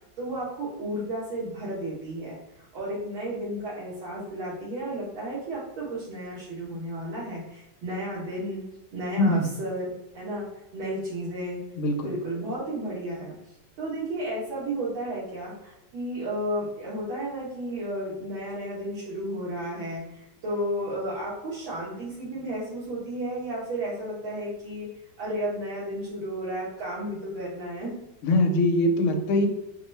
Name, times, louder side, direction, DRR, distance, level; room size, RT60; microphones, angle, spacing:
voice 1, 0.2-2.4 2.7-8.6 8.9-10.5 10.7-11.6 12.0-13.4 13.8-24.9 25.2-27.9, right 1 dB, 80° right, -7 dB, 1.8 m, -33 dB
voice 2, 9.2-9.5 11.8-12.1 28.2-29.5, left 1 dB, 85° left, 5 dB, 1.5 m, -22 dB
4.7 x 2.2 x 3.1 m, 0.96 s
omnidirectional pair, 2.2 m